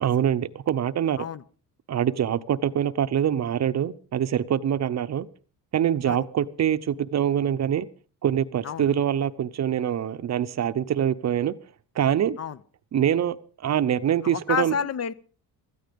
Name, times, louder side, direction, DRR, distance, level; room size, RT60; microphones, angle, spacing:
voice 1, 0.0-1.3 1.9-5.3 5.7-7.9 8.2-11.5 12.0-12.4 12.9-14.7, right 9 dB, 40° right, 13 dB, 0.8 m, -24 dB
voice 2, 14.2-15.1, left 7 dB, 40° left, 16 dB, 0.7 m, -29 dB
16.0 x 14.0 x 5.2 m, 0.39 s
cardioid pair, 140°, 40 cm